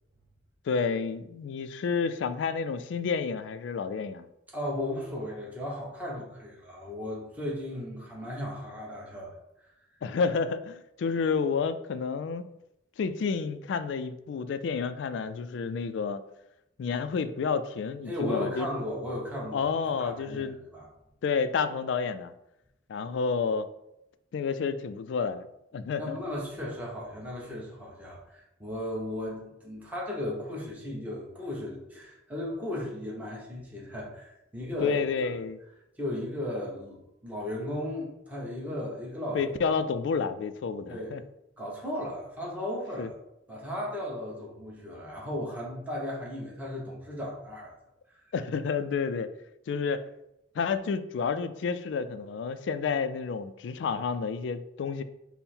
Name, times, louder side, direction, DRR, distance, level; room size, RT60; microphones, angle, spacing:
voice 1, 0.7-4.3 10.0-12.4 13.0-16.2 16.8-18.7 19.5-20.5 21.2-22.3 22.9-23.7 24.3-25.5 25.7-26.2 34.8-35.6 39.3-41.2 43.0-43.1 48.3-49.3 49.7-50.0 50.6-55.0, left 5 dB, 65° left, 12 dB, 0.3 m, -30 dB
voice 2, 4.5-9.3 18.1-20.9 25.8-35.3 36.0-39.8 40.9-41.2 41.6-43.1 43.5-47.7 48.1-48.2, left 1 dB, 10° right, -4 dB, 1.0 m, -36 dB
5.4 x 2.1 x 4.3 m, 0.86 s
head